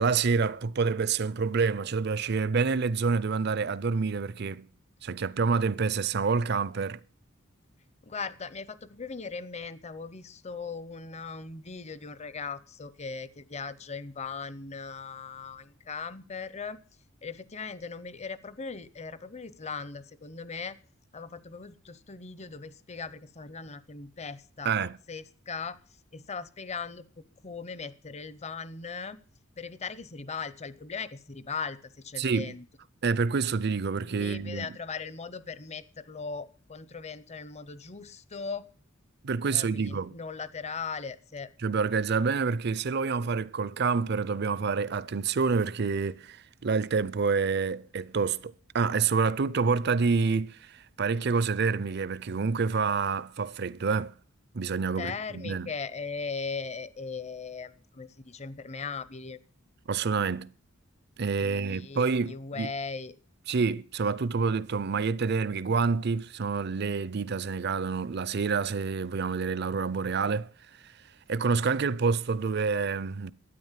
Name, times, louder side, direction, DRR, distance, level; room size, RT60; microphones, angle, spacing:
voice 1, 0.0-4.7 5.0-7.0 24.6-25.0 32.2-32.5 33.0-34.7 39.2-40.1 41.6-46.4 46.6-54.1 54.5-55.7 59.9-60.5 61.2-62.7 63.5-70.5 71.3-73.3, right 5 dB, 55° right, 0.6 m, -27 dB
voice 2, 8.0-16.8 17.2-20.8 21.1-25.8 26.1-27.0 27.4-29.2 29.6-32.7 34.0-38.6 39.5-41.5 55.0-59.4 61.4-63.1, left 5 dB, 35° left, 0.8 m, -39 dB
12.5 x 9.6 x 7.4 m
head